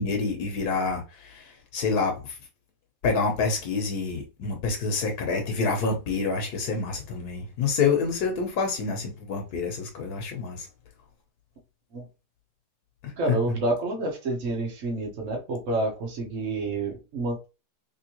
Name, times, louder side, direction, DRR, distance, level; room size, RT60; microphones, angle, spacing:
voice 1, 0.0-2.4 3.0-10.7 13.0-13.4, left 4 dB, 70° left, 1.3 m, -27 dB
voice 2, 13.2-17.5, right 2 dB, 50° right, 1.4 m, -29 dB
3.5 x 3.2 x 2.9 m
omnidirectional pair, 1.8 m